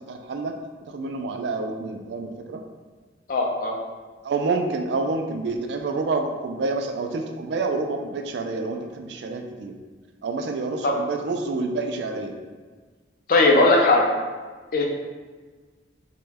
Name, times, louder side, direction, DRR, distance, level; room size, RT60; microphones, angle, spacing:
voice 1, 0.1-0.5 0.9-2.6 4.2-9.7 10.2-12.3, right 3 dB, 65° right, 4 dB, 0.3 m, -28 dB
voice 2, 3.3-3.8 10.8-10.9 13.3-14.1 14.7-14.8, left 2 dB, 50° left, 0 dB, 0.4 m, -18 dB
2.9 x 2.2 x 3.3 m, 1.4 s
head